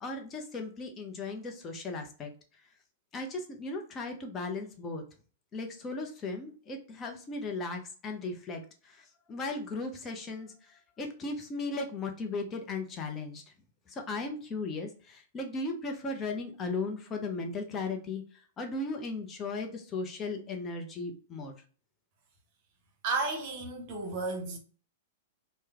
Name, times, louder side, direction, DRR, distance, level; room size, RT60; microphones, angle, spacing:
voice 1, 0.0-2.3 3.1-5.0 5.5-13.4 13.9-18.2 18.6-21.5, left 3 dB, 25° left, 0.7 m, -37 dB
voice 2, 23.0-24.6, right 3 dB, 45° right, 0.9 m, -33 dB
3.1 x 2.1 x 3.4 m
figure-of-eight pair, 100°, 0 cm